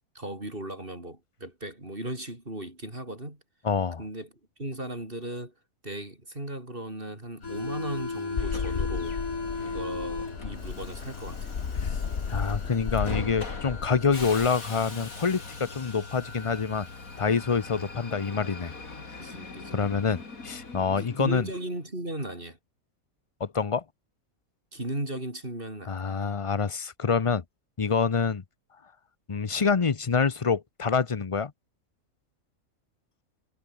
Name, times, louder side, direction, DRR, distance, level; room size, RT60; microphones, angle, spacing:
voice 1, 0.1-3.4 4.0-4.3 4.6-5.5 5.8-9.2 9.6-11.5 19.2-19.8 20.9-22.6 24.7-26.0, right 1 dB, 40° right, 6.3 m, -36 dB
voice 2, 3.6-4.0 11.8-12.0 12.3-16.9 17.2-18.7 19.7-21.5 23.4-23.8 25.9-27.4 27.8-28.4 29.3-31.5, left 5 dB, 30° left, 0.6 m, -26 dB
Subway metro underground, 7.4-21.8, left 3 dB, 75° left, 3.7 m, -38 dB
sound 1, 8.4-14.5, left 6 dB, 50° left, 1.4 m, -34 dB
omnidirectional pair, 1.5 m